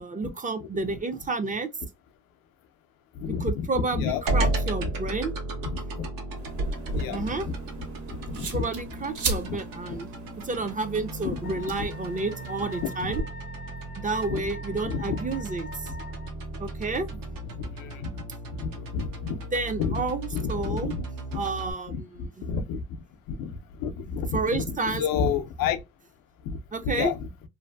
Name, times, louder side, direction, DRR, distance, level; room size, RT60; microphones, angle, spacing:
voice 1, 0.0-1.7 3.3-5.7 7.1-7.5 8.3-10.1 10.4-13.2 14.0-15.9 16.6-17.2 19.5-20.9 21.3-22.5 24.3-25.0 26.7-27.1, right 3 dB, 25° right, 0.4 m, -30 dB
voice 2, 3.2-4.4 4.8-4.9 5.6-6.1 6.9-7.5 8.1-8.6 9.5-9.6 9.9-10.0 11.2-11.5 11.8-11.9 14.3-14.4 14.8-15.2 17.5-18.2 18.5-19.4 19.8-20.0 20.3-21.1 21.3-21.4 21.9-22.8 23.3-24.6 24.9-25.8 26.4-26.6 26.8-27.3, left 6 dB, 85° left, 0.5 m, -30 dB
sound 1, 4.3-21.7, right 2 dB, 75° right, 0.8 m, -35 dB
sound 2, 6.4-13.2, right 3 dB, 60° right, 1.2 m, -37 dB
Wind instrument woodwind instrument, 11.4-16.3, left 2 dB, 30° left, 0.5 m, -44 dB
2.6 x 2.4 x 2.2 m
cardioid pair, 90°, 34 cm